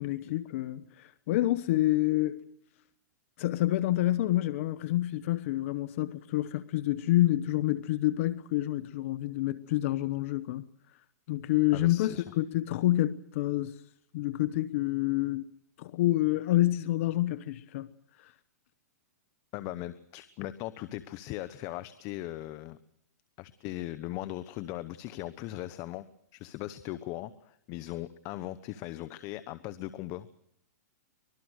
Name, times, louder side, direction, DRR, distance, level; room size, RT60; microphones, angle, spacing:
voice 1, 0.0-2.4 3.4-10.6 11.3-13.8 14.1-15.4 15.8-17.9 18.2-18.3, left 16 dB, 55° left, 1.2 m, -28 dB
voice 2, 11.7-12.2 19.5-22.8 23.4-26.0 26.3-30.3, left 15 dB, 35° left, 1.2 m, -39 dB
25.0 x 21.0 x 6.5 m
hypercardioid pair, 135°, 9 cm